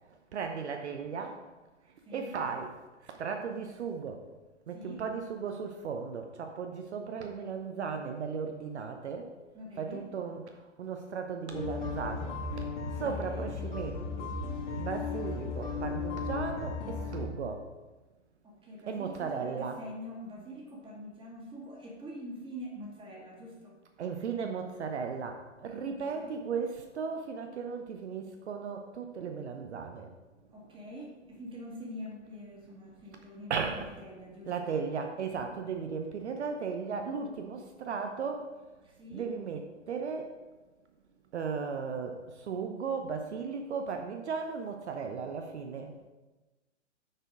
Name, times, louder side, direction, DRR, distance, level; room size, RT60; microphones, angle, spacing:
voice 1, 0.1-1.4 2.1-2.7 3.0-4.2 4.7-9.3 9.8-14.3 14.8-17.7 18.9-19.8 24.0-30.1 33.5-33.9 34.5-38.5 39.1-40.4 41.3-46.0, right 5 dB, 65° right, 5 dB, 0.8 m, -36 dB
voice 2, 2.0-2.4 4.7-5.0 9.5-10.0 12.9-13.5 18.4-23.8 25.8-26.4 30.5-34.7 38.8-39.3, equal, 15° right, -2 dB, 1.9 m, -45 dB
sound 1, 11.5-17.2, left 4 dB, 65° left, 2.3 m, -36 dB
8.9 x 4.4 x 5.0 m, 1.2 s
figure-of-eight pair, 110°, 37 cm